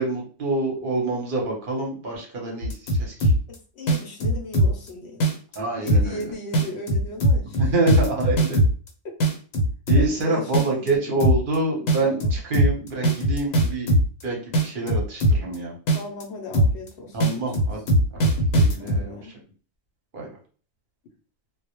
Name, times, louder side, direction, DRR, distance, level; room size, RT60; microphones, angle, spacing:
voice 1, 0.0-3.3 5.6-6.2 7.6-8.6 9.9-14.0 14.2-15.7 17.1-17.8 18.2-18.3 18.5-19.2 20.1-20.3, right 2 dB, 50° right, -1 dB, 0.8 m, -26 dB
sound 1, 2.6-3.5 3.9-4.9 5.2-5.6 5.9-6.2 6.5-8.9 9.2-10.2 10.5-10.9 11.2-11.5 11.9-14.2 14.5-15.5 15.9-16.2 16.5-16.9 17.2-19.0, right 1 dB, 90° left, 1.0 m, -19 dB
voice 2, 3.5-5.3 5.8-7.7 9.9-11.0 11.8-12.3 15.9-17.5 18.8-19.3, left 2 dB, 65° left, 1 dB, 0.7 m, -37 dB
2.2 x 2.0 x 2.8 m, 0.41 s
omnidirectional pair, 1.4 m